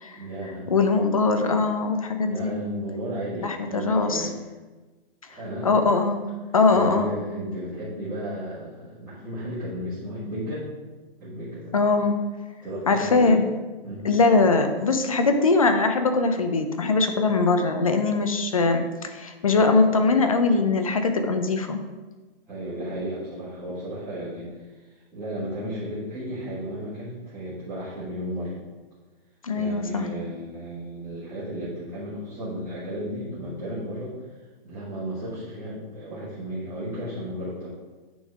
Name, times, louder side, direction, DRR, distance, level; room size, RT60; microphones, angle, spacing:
voice 1, 0.1-0.7 2.3-4.4 5.3-5.7 6.7-10.7 11.2-11.7 12.6-13.4 13.8-14.2 22.5-28.6 29.5-34.1 34.6-37.7, equal, 5° right, -15 dB, 1.6 m, -34 dB
voice 2, 0.7-2.6 3.4-4.3 5.6-6.2 6.5-7.2 11.7-12.2 12.9-13.4 14.0-21.8 29.4-30.1, left 3 dB, 35° left, 7 dB, 0.6 m, -21 dB
9.2 x 3.9 x 4.8 m, 1.2 s
hypercardioid pair, 175°, 30 cm